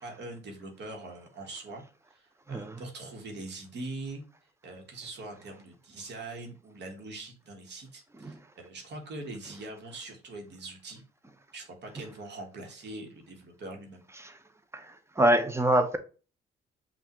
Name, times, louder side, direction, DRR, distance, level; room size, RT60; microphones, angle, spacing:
voice 1, 0.0-1.8 2.1-4.2 4.6-11.0 11.5-14.0, right 2 dB, 60° right, 1.3 m, -42 dB
voice 2, 15.2-16.0, right 1 dB, 15° right, 0.6 m, -24 dB
5.6 x 2.5 x 2.9 m
cardioid pair, 90°, 20 cm